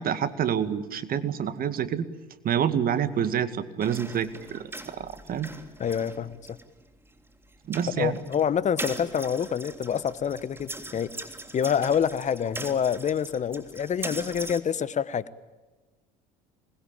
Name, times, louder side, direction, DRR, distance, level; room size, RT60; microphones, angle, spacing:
voice 1, 0.0-2.1 2.4-5.5 7.7-8.2, right 8 dB, 45° right, 12 dB, 2.1 m, -27 dB
sound 1, 3.8-14.6, right 2 dB, 10° right, 3.3 m, -41 dB
voice 2, 5.8-6.4 8.0-11.1 11.5-15.2, left 8 dB, 35° left, 16 dB, 1.2 m, -27 dB
26.5 x 20.5 x 8.9 m, 1.2 s
hypercardioid pair, 70°, 20 cm